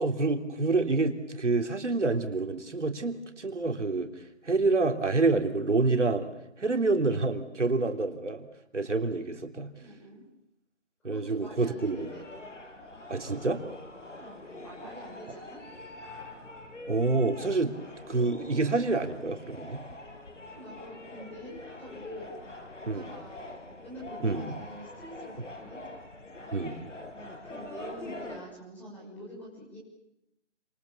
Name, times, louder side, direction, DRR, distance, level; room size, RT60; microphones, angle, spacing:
voice 1, 0.0-6.3 6.6-8.5 8.7-9.7 11.0-12.1 13.1-13.6 16.9-17.7 18.1-19.8 22.9-23.1 24.2-24.5 26.5-26.8, right 3 dB, 75° right, 5 dB, 3.4 m, -27 dB
voice 2, 9.7-10.3 11.0-12.2 12.6-12.9 14.0-15.6 20.5-22.4 22.8-25.8 27.4-29.8, equal, 5° left, -5 dB, 6.3 m, -46 dB
sound 1, 11.8-28.4, left 2 dB, 90° left, 6.1 m, -44 dB
28.0 x 27.5 x 7.3 m, 0.85 s
figure-of-eight pair, 170°, 36 cm